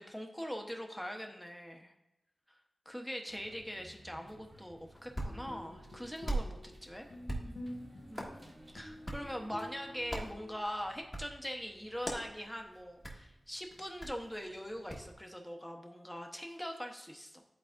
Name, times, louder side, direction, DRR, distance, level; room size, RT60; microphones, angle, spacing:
voice 1, 0.0-1.9 2.5-2.6 2.8-7.1 7.4-7.8 8.1-8.4 8.7-17.4, equal, 5° left, 2 dB, 0.9 m, -42 dB
sound 1, 3.3-10.3, right 1 dB, 50° right, 1.1 m, -58 dB
Hands, 4.8-15.1, right 1 dB, 20° left, 1.3 m, -44 dB
sound 2, 5.1-10.6, left 1 dB, 70° left, 1.2 m, -49 dB
11.0 x 4.1 x 2.6 m, 0.92 s
cardioid pair, 60°, 0 cm